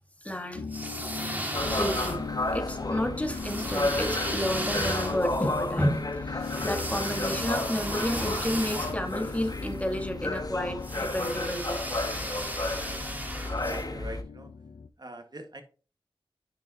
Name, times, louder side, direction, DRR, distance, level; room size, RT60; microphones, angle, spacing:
voice 1, 0.2-0.7 1.7-2.3 2.5-11.8, equal, 15° left, 4 dB, 1.7 m, -31 dB
sound 1, 0.5-14.9, left 5 dB, 80° left, 0.6 m, -40 dB
sound 2, 0.6-2.5 3.3-9.7 10.8-13.8, right 1 dB, 20° right, 2.1 m, -35 dB
sound 3, 1.5-14.2, left 2 dB, 45° left, 1.2 m, -33 dB
voice 2, 13.6-14.5 15.0-15.6, right 1 dB, 50° right, 6 dB, 1.7 m, -42 dB
9.6 x 6.0 x 2.8 m, 0.36 s
wide cardioid pair, 60°, 9 cm